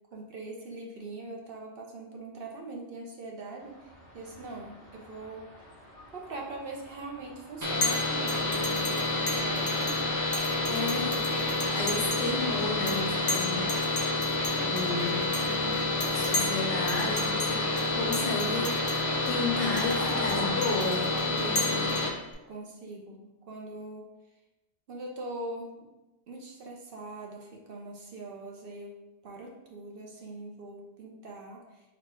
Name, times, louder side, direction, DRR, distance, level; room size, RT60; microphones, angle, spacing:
voice 1, 0.1-5.5 6.1-10.2 15.5-16.0 22.5-24.0 24.9-25.9 26.3-29.0 29.2-31.8, right 2 dB, 60° right, 0 dB, 0.7 m, -42 dB
sound 1, 3.6-20.5, equal, 75° right, 1.9 m, -46 dB
sound 2, 7.6-22.1, left 2 dB, 20° right, 0.6 m, -29 dB
Chink clink, 7.8-8.0 8.3-10.0 10.3-12.3 12.6-13.0 13.3-16.6 16.9-17.5 17.8-17.9 18.1-19.0 19.3-19.4 19.8-22.3, left 3 dB, 70° left, 0.9 m, -34 dB
voice 2, 10.7-11.3 11.7-13.7 14.6-15.5 16.1-18.8 19.3-22.0, left 3 dB, 85° left, -1 dB, 1.3 m, -33 dB
4.0 x 2.2 x 4.3 m, 1.0 s
omnidirectional pair, 1.2 m